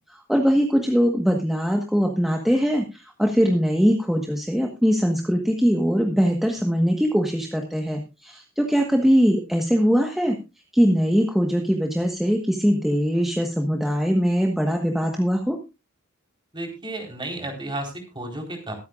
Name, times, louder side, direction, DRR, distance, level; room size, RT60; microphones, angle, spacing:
voice 1, 0.1-10.4 10.7-15.6, equal, ahead, 2 dB, 1.3 m, -21 dB
voice 2, 16.5-18.7, right 1 dB, 20° right, 2 dB, 4.2 m, -32 dB
23.5 x 9.1 x 2.5 m, 0.27 s
head